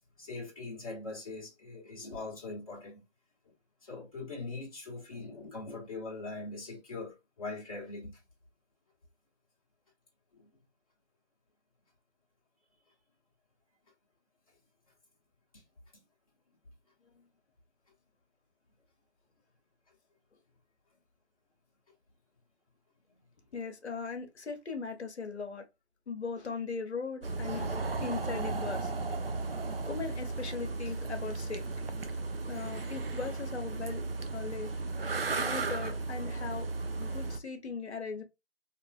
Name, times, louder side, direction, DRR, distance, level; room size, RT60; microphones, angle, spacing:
voice 1, 0.2-3.0 3.8-8.2 10.4-10.5, left 3 dB, 30° left, 0.8 m, -41 dB
voice 2, 23.5-25.6 26.1-28.9 29.8-31.6 32.5-34.0 34.3-34.7 35.4-36.7 37.0-38.2, left 5 dB, 70° left, 0.8 m, -39 dB
sound 1, 27.2-37.4, right 3 dB, 55° right, 0.5 m, -35 dB
3.2 x 2.4 x 2.3 m
figure-of-eight pair, 160°, 35 cm